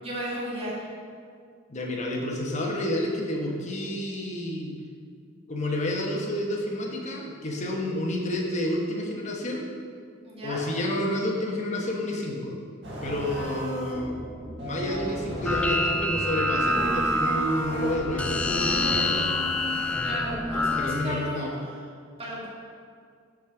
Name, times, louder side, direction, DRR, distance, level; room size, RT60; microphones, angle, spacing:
voice 1, 0.0-0.9 10.2-10.6 20.0-21.7 22.2-22.5, equal, 30° right, -6 dB, 1.8 m, -34 dB
voice 2, 1.7-4.7 5.5-9.7 10.4-12.6 13.0-14.1 14.6-19.2 20.8-21.5, left 1 dB, 35° left, -1 dB, 1.1 m, -30 dB
sound 1, 12.8-20.2, equal, 60° right, 1.7 m, -34 dB
sound 2, 15.5-21.1, left 1 dB, 5° left, 0.3 m, -27 dB
6.2 x 5.0 x 5.9 m, 2.2 s
head